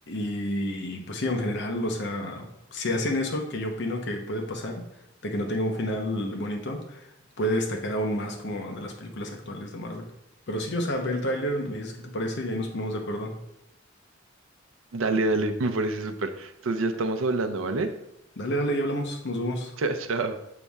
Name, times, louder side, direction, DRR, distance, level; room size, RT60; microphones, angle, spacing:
voice 1, 0.1-4.8 5.2-7.1 7.4-10.1 10.5-13.3 18.4-19.7, equal, 60° left, 3 dB, 0.9 m, -29 dB
voice 2, 14.9-17.9 19.8-20.4, right 2 dB, 90° right, 8 dB, 0.6 m, -27 dB
6.8 x 4.1 x 3.5 m, 0.82 s
head